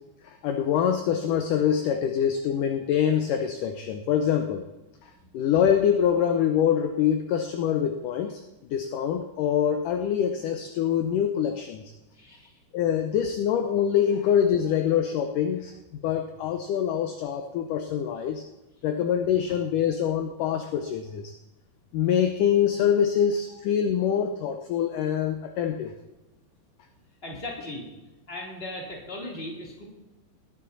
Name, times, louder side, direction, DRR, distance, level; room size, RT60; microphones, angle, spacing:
voice 1, 0.4-4.7 5.3-8.4 8.7-11.8 12.7-15.7 16.0-18.4 18.8-21.3 21.9-25.9, left 8 dB, 75° left, 6 dB, 1.9 m, -25 dB
voice 2, 12.1-12.5 22.7-22.8 27.2-27.9 28.3-29.8, left 1 dB, 15° left, -2 dB, 3.1 m, -38 dB
19.5 x 11.5 x 4.1 m, 1.0 s
omnidirectional pair, 4.7 m